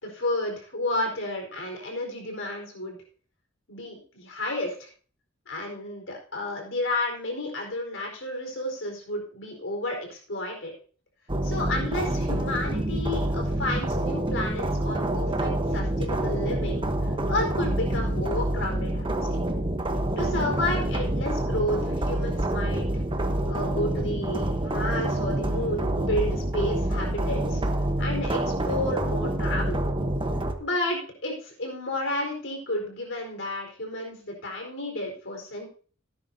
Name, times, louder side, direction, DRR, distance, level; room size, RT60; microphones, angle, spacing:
voice 1, 0.0-3.0 3.7-4.9 5.5-10.7 11.4-16.8 17.3-19.4 20.2-22.8 23.5-27.6 28.0-29.8 30.6-35.7, left 1 dB, 65° left, 1 dB, 4.6 m, -31 dB
sound 1, 11.3-30.5, right 1 dB, 25° right, 1.1 m, -27 dB
17.5 x 9.7 x 2.8 m, 0.41 s
head